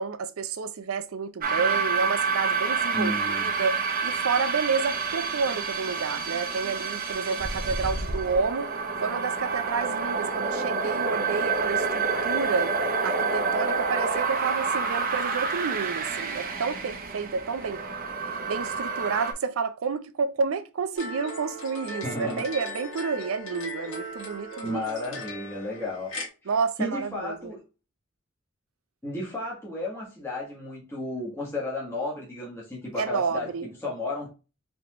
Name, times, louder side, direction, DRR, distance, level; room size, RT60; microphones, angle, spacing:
voice 1, 0.0-8.7 9.0-12.7 13.0-17.8 18.5-24.8 26.5-27.5 33.0-33.7, right 5 dB, 75° right, 0.5 m, -30 dB
sound 1, 1.4-19.3, right 5 dB, 40° right, 0.8 m, -28 dB
voice 2, 2.9-3.5 22.0-22.4 24.6-26.1 26.4-26.5 26.8-27.6 29.0-34.3, left 1 dB, 10° left, 1.3 m, -33 dB
sound 2, 21.0-26.3, left 1 dB, 60° left, 1.7 m, -38 dB
4.1 x 3.3 x 2.9 m
head